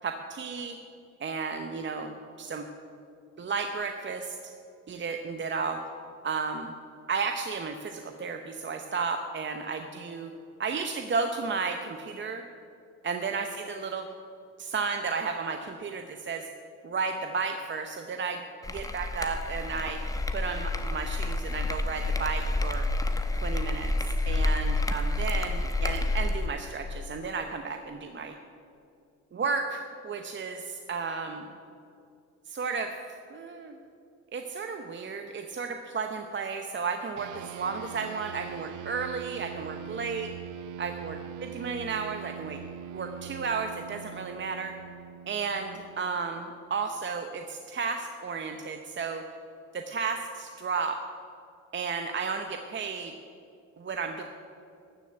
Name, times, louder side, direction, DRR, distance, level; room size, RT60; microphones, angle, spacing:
voice 1, 0.0-0.8 1.2-2.7 3.4-4.4 4.9-5.8 6.2-6.7 7.1-10.3 10.6-12.4 13.0-14.1 14.6-16.5 16.8-18.4 18.7-20.0 20.3-22.9 23.4-28.3 29.3-31.4 32.5-32.9 33.3-33.8 34.3-40.3 40.8-42.6 42.9-44.7 45.3-49.2 49.7-51.0 51.7-53.1 53.8-54.2, right 5 dB, 40° right, 5 dB, 0.8 m, -33 dB
sound 1, 18.6-26.5, left 2 dB, 10° left, 0.9 m, -29 dB
sound 2, 37.2-46.9, right 9 dB, 85° right, 0.5 m, -42 dB
13.0 x 6.8 x 7.9 m, 2.5 s
cardioid pair, 90°, 30 cm